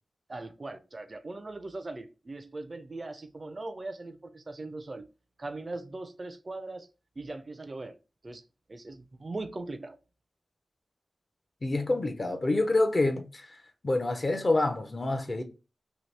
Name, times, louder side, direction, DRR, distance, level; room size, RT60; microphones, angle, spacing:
voice 1, 0.3-5.0 5.4-6.9 7.2-8.0 8.2-8.4 8.7-10.0, right 2 dB, 35° right, 0.4 m, -40 dB
voice 2, 11.6-13.6 13.8-15.4, left 2 dB, 40° left, 0.5 m, -27 dB
2.8 x 2.6 x 3.2 m
wide cardioid pair, 75°, 0 cm